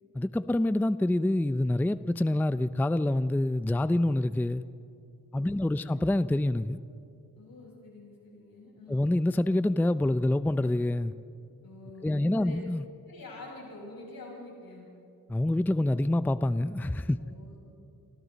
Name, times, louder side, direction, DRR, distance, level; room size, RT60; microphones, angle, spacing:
voice 1, 0.1-4.6 5.3-6.8 8.9-11.1 12.0-12.8 15.3-17.2, left 1 dB, 5° left, 14 dB, 0.4 m, -26 dB
voice 2, 5.4-5.9 7.4-9.1 11.6-12.6 13.1-14.9 17.2-17.6, left 2 dB, 80° left, -3 dB, 7.6 m, -47 dB
29.0 x 25.0 x 4.1 m, 2.6 s
cardioid pair, 65°, 35 cm